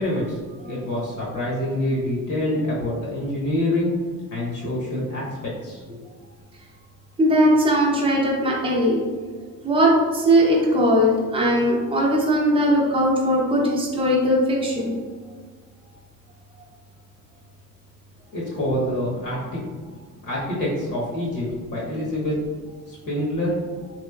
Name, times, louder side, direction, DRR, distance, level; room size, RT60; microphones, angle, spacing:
voice 1, 0.0-3.9 4.3-6.0 18.3-19.6 20.3-22.4 22.9-23.6, left 1 dB, 60° left, -5 dB, 1.1 m, -26 dB
voice 2, 7.2-9.1 9.6-14.9, equal, 15° right, -4 dB, 0.6 m, -19 dB
3.4 x 3.0 x 2.3 m, 1.5 s
cardioid pair, 165°, 34 cm